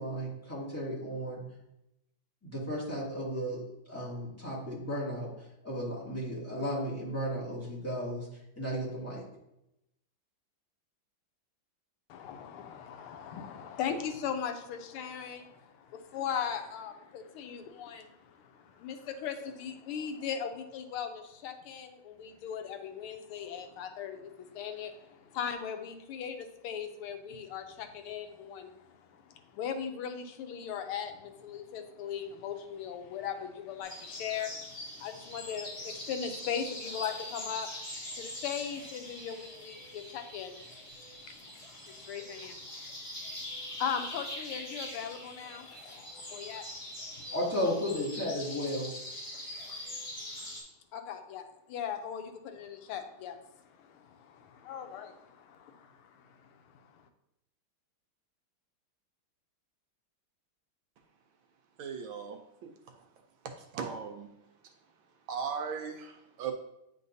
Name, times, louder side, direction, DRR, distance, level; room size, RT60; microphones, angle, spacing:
voice 1, 0.0-1.4 2.4-3.6 3.9-5.3 5.6-8.3 8.6-9.2 47.3-48.9, equal, 5° left, -7 dB, 1.8 m, -34 dB
voice 2, 12.1-37.7 38.1-40.5 41.2-42.6 43.8-46.6 50.9-56.5, left 7 dB, 90° left, 6 dB, 1.5 m, -39 dB
sound 1, 33.8-50.6, left 1 dB, 50° left, 2.9 m, -43 dB
voice 3, 61.8-62.7 63.6-64.3 65.3-66.5, right 6 dB, 75° right, 4 dB, 1.3 m, -38 dB
9.3 x 3.8 x 2.6 m, 0.85 s
omnidirectional pair, 2.4 m